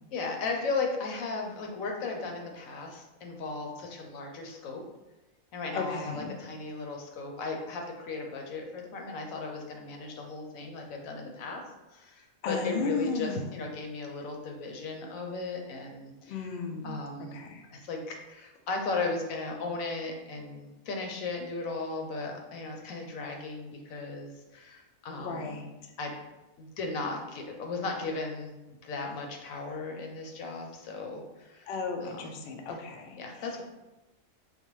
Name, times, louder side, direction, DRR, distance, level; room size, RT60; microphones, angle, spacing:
voice 1, 0.1-4.8 5.5-11.6 11.9-16.6 16.8-17.4 17.7-25.6 26.0-26.2 26.6-31.7 32.0-32.3 32.7-32.8 33.2-33.6, left 3 dB, 90° left, 1 dB, 1.1 m, -36 dB
voice 2, 5.7-6.4 12.4-13.6 16.3-17.0 17.3-17.6 25.2-25.7 31.7-33.2, left 4 dB, 60° left, 3 dB, 0.6 m, -34 dB
5.2 x 2.1 x 3.0 m, 1.0 s
omnidirectional pair, 1.4 m